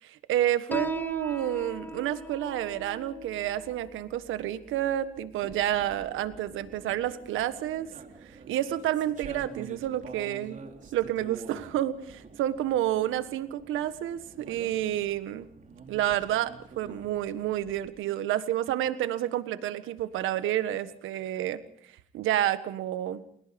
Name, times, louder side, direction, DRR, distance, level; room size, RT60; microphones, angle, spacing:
voice 1, 0.0-7.9 8.5-10.6 10.9-15.5 15.9-21.6 22.1-23.2, right 12 dB, 90° right, 12 dB, 1.6 m, -29 dB
Piano, 0.7-7.8, left 2 dB, 10° left, 1.3 m, -42 dB
sound 1, 5.4-17.9, right 4 dB, 40° right, 3.6 m, -47 dB
29.5 x 18.0 x 5.3 m, 0.65 s
cardioid pair, 90°, 20 cm